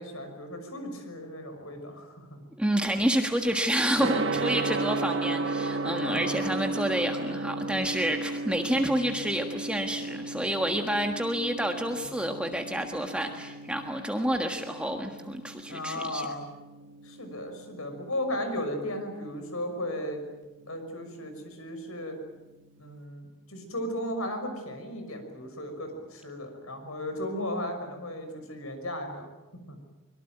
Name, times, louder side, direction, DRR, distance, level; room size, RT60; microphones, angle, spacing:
voice 1, 0.0-2.4 6.0-6.4 15.7-16.4 17.0-20.2 20.7-22.2 22.8-29.3 29.7-29.8, left 1 dB, 80° left, 6 dB, 6.1 m, -35 dB
voice 2, 2.6-16.3, right 1 dB, 5° right, 4 dB, 1.5 m, -29 dB
Gong, 4.0-23.0, right 2 dB, 55° right, 2.0 m, -35 dB
24.5 x 22.5 x 9.2 m, 1.1 s
head